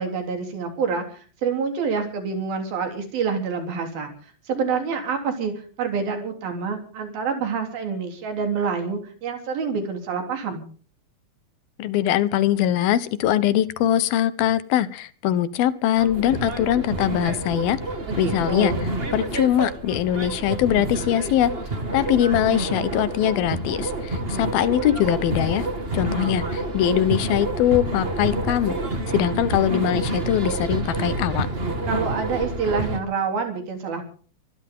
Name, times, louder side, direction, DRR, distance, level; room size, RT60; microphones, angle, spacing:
voice 1, 0.0-5.5 5.8-10.6 18.1-18.9 31.9-34.1, right 5 dB, 85° right, 5 dB, 5.3 m, -27 dB
voice 2, 11.8-17.8 18.2-18.7 19.1-21.5 21.9-25.6 25.9-28.8 29.1-31.5, left 11 dB, 85° left, 15 dB, 3.0 m, -22 dB
sound 1, 16.0-33.0, right 2 dB, 20° right, 1.6 m, -28 dB
25.0 x 15.0 x 3.8 m, 0.43 s
omnidirectional pair, 4.1 m